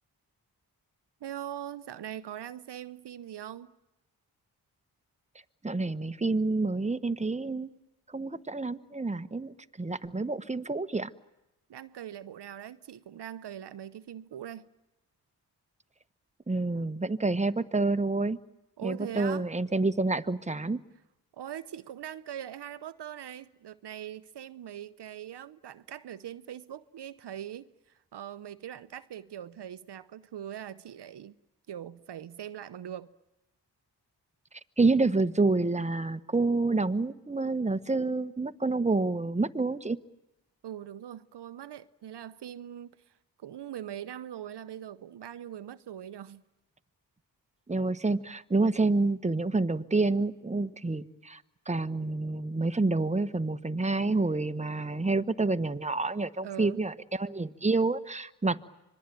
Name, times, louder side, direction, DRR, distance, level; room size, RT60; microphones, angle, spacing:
voice 1, 1.2-3.7 11.7-14.7 18.8-19.5 21.3-31.3 31.7-33.1 40.6-46.4 56.4-56.8, right 10 dB, 70° right, 0.8 m, -42 dB
voice 2, 5.6-7.7 8.1-11.1 16.5-18.4 18.8-20.8 34.8-40.0 47.7-51.4 51.7-58.6, right 3 dB, 15° right, 1.2 m, -28 dB
25.5 x 21.5 x 9.1 m
supercardioid pair, 40°, 43 cm